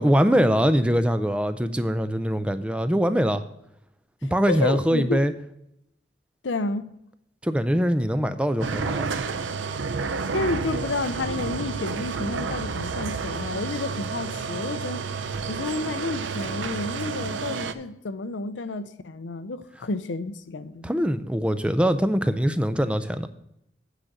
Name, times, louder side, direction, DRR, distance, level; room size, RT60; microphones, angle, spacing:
voice 1, 0.0-3.4 4.3-5.3 7.4-9.1 20.8-23.3, equal, 5° right, 0.4 m, -22 dB
voice 2, 4.2-5.2 6.4-6.9 10.0-15.1 15.5-20.9, left 3 dB, 85° left, 0.6 m, -30 dB
sound 1, 8.6-17.7, right 5 dB, 85° right, 0.6 m, -30 dB
8.6 x 5.0 x 7.7 m
head